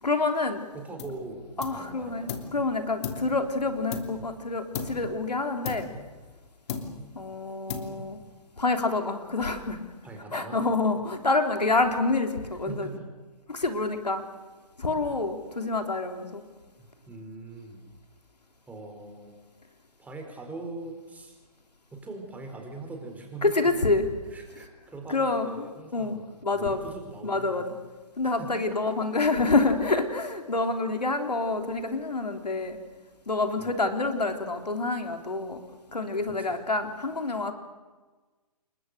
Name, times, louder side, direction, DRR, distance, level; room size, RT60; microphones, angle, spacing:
voice 1, 0.0-0.6 1.6-5.9 7.1-8.2 8.6-9.8 10.3-13.0 13.5-14.3 14.8-16.4 23.4-24.1 25.1-25.7 25.9-26.9 27.2-27.6 28.2-32.8 33.3-35.6 35.9-37.5, left 3 dB, 90° left, 5 dB, 3.5 m, -27 dB
voice 2, 0.7-2.5 10.0-10.6 12.7-13.1 16.8-17.8 18.7-19.4 20.0-21.4 21.9-23.6 24.3-27.7 28.2-29.3 30.6-30.8 33.6-33.8 36.2-36.6, right 3 dB, 5° right, 3 dB, 4.4 m, -42 dB
sound 1, 1.0-1.3 1.6-2.6 3.0-4.4 4.7-5.2 5.6-6.4 6.7-7.2 7.7-8.2, left 6 dB, 45° left, 3.1 m, -36 dB
29.5 x 22.0 x 6.7 m, 1.3 s
figure-of-eight pair, 135°, 20 cm